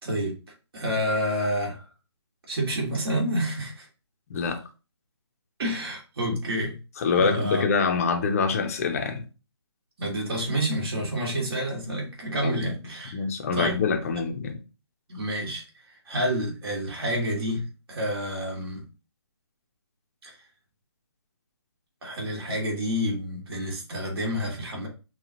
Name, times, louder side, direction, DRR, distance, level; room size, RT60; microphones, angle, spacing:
voice 1, 0.0-0.3 0.7-1.8 2.5-3.9 5.6-6.8 7.2-7.7 10.0-13.2 13.5-13.8 15.1-18.8 20.2-20.4 22.0-24.9, equal, 55° right, 2.2 m, -29 dB
voice 2, 4.3-4.6 7.0-9.2 12.4-12.8 13.1-14.6, left 5 dB, 30° left, 0.7 m, -25 dB
5.7 x 2.4 x 2.9 m
hypercardioid pair, 160°, 15 cm